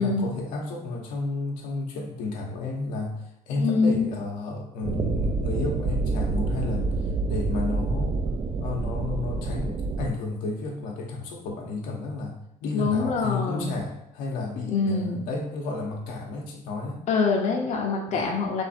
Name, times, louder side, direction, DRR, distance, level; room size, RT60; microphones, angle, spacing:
voice 1, 0.0-7.0 7.3-8.2 8.6-17.0 18.1-18.3, left 3 dB, 80° left, 0 dB, 1.0 m, -32 dB
voice 2, 3.6-4.0 12.7-13.7 14.7-15.2 17.1-18.6, left 4 dB, 55° left, 0 dB, 0.8 m, -24 dB
sound 1, 4.8-10.1, right 3 dB, 40° right, 0.5 m, -27 dB
3.5 x 3.2 x 4.3 m, 0.80 s
supercardioid pair, 90°, 14 cm